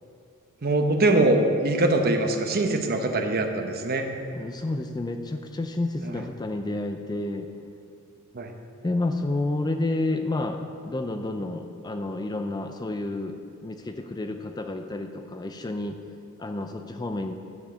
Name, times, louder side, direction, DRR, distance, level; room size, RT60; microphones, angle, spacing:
voice 1, 0.6-4.1 6.0-6.2 8.3-8.5, right 2 dB, 45° right, 4 dB, 0.8 m, -23 dB
voice 2, 4.3-7.5 8.8-13.4 13.6-16.0 16.4-17.3, left 2 dB, 20° left, 6 dB, 0.4 m, -30 dB
10.0 x 5.1 x 6.7 m, 2.4 s
head